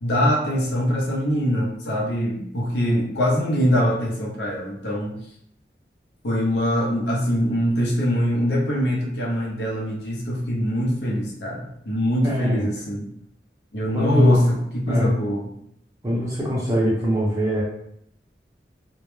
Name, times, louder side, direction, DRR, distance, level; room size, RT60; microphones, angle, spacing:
voice 1, 0.0-5.2 6.2-13.0 13.7-15.5, equal, 75° left, -3 dB, 0.6 m, -23 dB
voice 2, 12.2-12.7 13.9-14.4 14.9-15.1 16.0-17.6, equal, 20° right, -6 dB, 0.6 m, -23 dB
2.2 x 2.0 x 3.0 m, 0.70 s
head